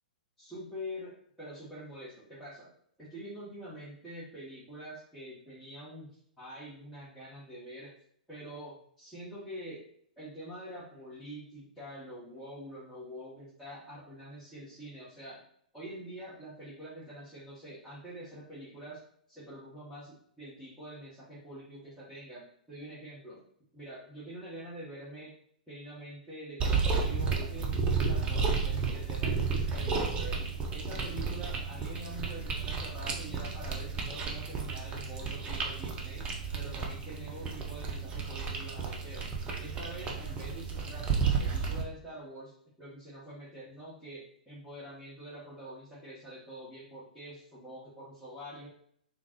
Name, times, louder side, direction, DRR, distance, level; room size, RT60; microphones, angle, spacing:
voice 1, 0.4-2.7 3.0-7.9 8.3-9.8 10.2-15.4 15.7-19.0 19.3-23.4 23.7-25.3 25.7-30.4 30.7-36.3 36.5-39.2 39.6-42.5 42.8-48.7, equal, 5° left, -12 dB, 1.3 m, -45 dB
sound 1, 26.6-41.8, right 5 dB, 25° right, 0.7 m, -32 dB
3.8 x 2.3 x 3.0 m, 0.67 s
figure-of-eight pair, 110°, 5 cm